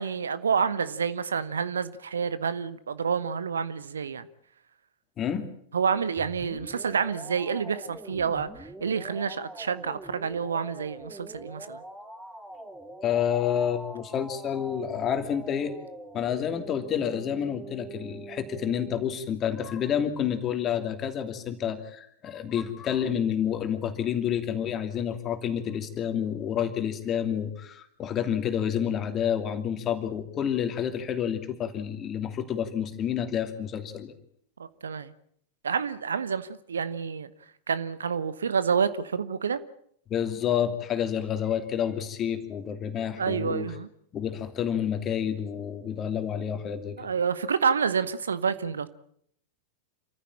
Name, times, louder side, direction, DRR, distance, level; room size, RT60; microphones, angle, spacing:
voice 1, 0.0-4.3 5.7-11.8 34.8-35.1 35.6-37.3 37.7-39.6 43.2-43.9 47.0-48.9, right 6 dB, 70° right, 1.0 m, -28 dB
voice 2, 5.2-5.5 13.0-15.7 16.1-34.1 40.1-43.7 44.1-47.1, left 9 dB, 30° left, 2.8 m, -29 dB
sound 1, 6.2-19.0, right 2 dB, 10° right, 2.8 m, -44 dB
27.5 x 14.5 x 8.7 m
figure-of-eight pair, 90°, 0 cm